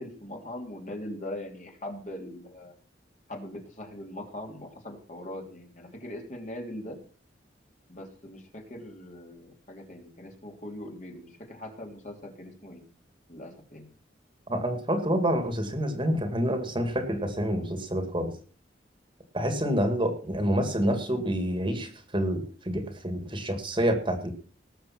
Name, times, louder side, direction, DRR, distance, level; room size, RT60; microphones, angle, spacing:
voice 1, 0.0-2.7 3.3-7.0 7.9-12.8 13.3-13.9, left 1 dB, 40° left, 2 dB, 3.3 m, -41 dB
voice 2, 14.5-18.3 19.3-24.3, equal, 25° right, 8 dB, 2.0 m, -28 dB
19.0 x 7.3 x 5.9 m, 0.41 s
head